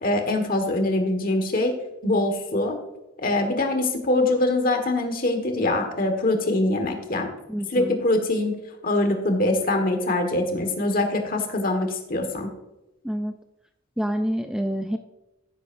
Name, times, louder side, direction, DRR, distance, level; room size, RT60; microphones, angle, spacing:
voice 1, 0.0-1.7 2.0-2.8 3.2-7.3 7.7-8.6 8.8-12.5, left 2 dB, 45° left, 5 dB, 1.5 m, -23 dB
voice 2, 7.5-8.0 13.0-13.4 14.0-15.0, equal, 5° right, 6 dB, 0.4 m, -27 dB
15.0 x 8.1 x 2.6 m, 0.96 s
head